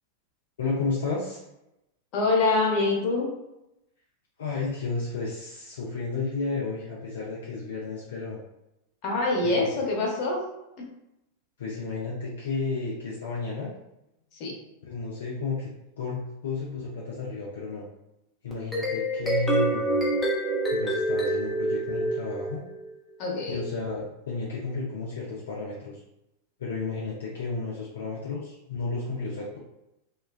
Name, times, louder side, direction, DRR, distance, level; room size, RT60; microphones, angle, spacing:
voice 1, 0.6-1.4 4.4-8.4 9.4-9.7 11.6-13.7 14.8-15.7 16.0-17.8 18.4-20.1 20.7-22.6 23.5-26.0 26.6-29.6, left 3 dB, 65° left, -4 dB, 0.4 m, -32 dB
voice 2, 2.1-3.3 9.0-10.4 10.8-10.9 14.4-14.5 23.2-23.7, left 3 dB, 40° left, -2 dB, 0.8 m, -25 dB
sound 1, 18.5-22.9, right 1 dB, 10° left, 0.7 m, -27 dB
3.1 x 2.1 x 2.3 m, 0.89 s
figure-of-eight pair, 90°, 0 cm